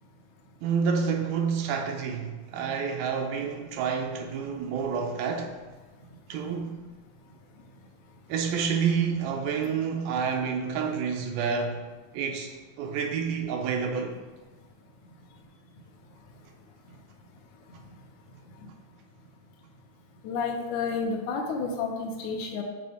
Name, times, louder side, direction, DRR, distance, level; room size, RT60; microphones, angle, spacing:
voice 1, 0.6-5.6 6.3-6.9 8.3-11.8 12.1-12.5 12.8-14.2, right 6 dB, 80° right, 2.4 m, -29 dB
voice 2, 20.2-22.6, left 4 dB, 75° left, 1.8 m, -30 dB
7.7 x 3.9 x 3.5 m
omnidirectional pair, 4.2 m